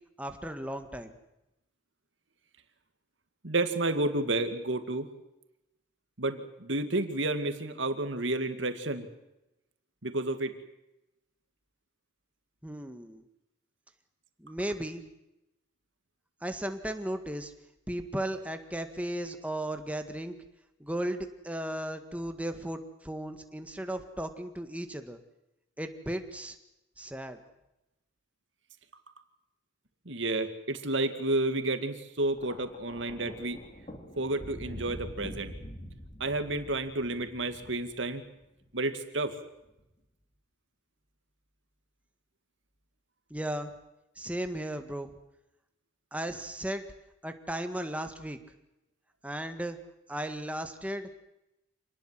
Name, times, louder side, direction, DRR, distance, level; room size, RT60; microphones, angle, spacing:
voice 1, 0.2-1.1 12.6-13.2 14.4-15.0 16.4-17.5 17.9-20.4 20.8-25.2 25.8-26.6 27.0-27.4 43.3-43.7 44.2-45.1 46.1-46.8 47.2-48.4 49.2-49.8 50.1-51.3, right 1 dB, 5° right, 7 dB, 1.8 m, -35 dB
voice 2, 3.4-5.1 6.2-9.1 10.0-10.5 30.1-33.6 34.2-35.5 36.2-38.2 38.7-39.3, right 2 dB, 75° right, 8 dB, 2.3 m, -31 dB
Thunder, 32.3-38.7 39.7-39.9, equal, 35° left, 3.4 m, -45 dB
27.0 x 19.5 x 7.6 m, 0.91 s
head